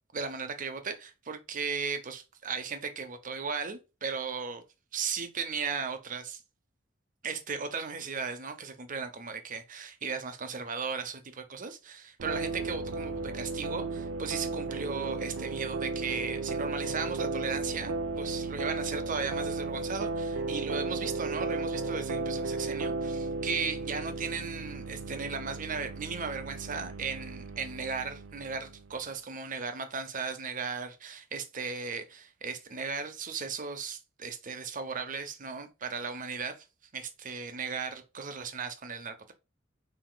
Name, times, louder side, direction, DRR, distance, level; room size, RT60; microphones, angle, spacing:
voice 1, 0.1-4.6 4.9-6.4 7.2-36.6 36.9-39.3, right 5 dB, 45° right, 0.7 m, -36 dB
sound 1, 12.2-28.9, right 3 dB, 90° right, 0.5 m, -35 dB
5.8 x 2.8 x 2.2 m
head